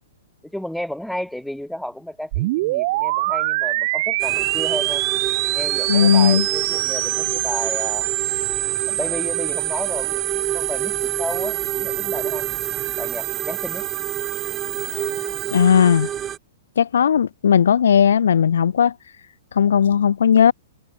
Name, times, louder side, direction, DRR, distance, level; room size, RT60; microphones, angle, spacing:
voice 1, 0.4-5.0 5.5-8.1 8.9-12.5 13.0-13.8, equal, ahead, 1.7 m, -32 dB
sound 1, 2.3-15.6, right 20 dB, 45° right, 1.3 m, -25 dB
sound 2, 4.2-16.4, right 10 dB, 20° right, 1.0 m, -30 dB
voice 2, 5.9-6.5 15.5-16.1 16.8-18.9 19.5-20.5, left 8 dB, 85° left, 1.2 m, -16 dB
hypercardioid pair, 155°, 0 cm